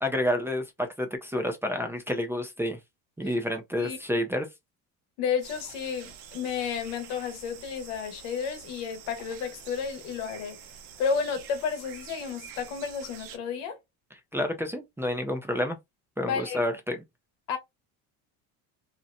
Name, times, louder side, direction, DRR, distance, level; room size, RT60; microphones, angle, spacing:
voice 1, 0.0-2.8 3.2-4.5 14.3-15.8 16.2-17.0, left 1 dB, 5° right, 0.4 m, -29 dB
voice 2, 5.2-10.6 11.0-13.8 16.2-16.6 17.5-17.6, left 6 dB, 85° left, 1.0 m, -31 dB
sound 1, 5.4-13.4, right 8 dB, 85° right, 0.8 m, -47 dB
2.8 x 2.0 x 2.4 m
cardioid pair, 115°, 40 cm